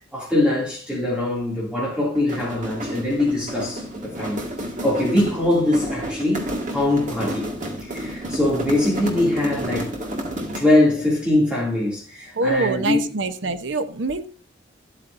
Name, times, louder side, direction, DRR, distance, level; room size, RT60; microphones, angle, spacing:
voice 1, 0.1-4.5 4.8-7.5 7.8-10.0 10.5-13.0, left 1 dB, 5° right, 2.6 m, -22 dB
sound 1, 2.1-10.8, equal, 40° right, 1.8 m, -31 dB
voice 2, 12.4-14.3, right 2 dB, 70° right, 0.8 m, -24 dB
13.0 x 8.4 x 2.6 m
head